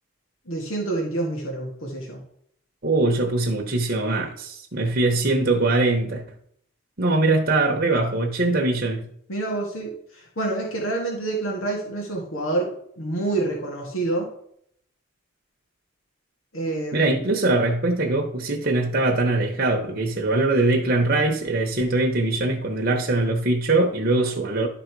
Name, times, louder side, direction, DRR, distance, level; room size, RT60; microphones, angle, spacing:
voice 1, 0.5-2.2 9.3-14.3 16.5-17.2, right 2 dB, 85° left, 0 dB, 1.9 m, -28 dB
voice 2, 2.8-6.2 7.0-9.1 16.9-24.7, right 2 dB, 45° right, 1 dB, 1.0 m, -22 dB
11.5 x 4.0 x 4.6 m, 0.68 s
head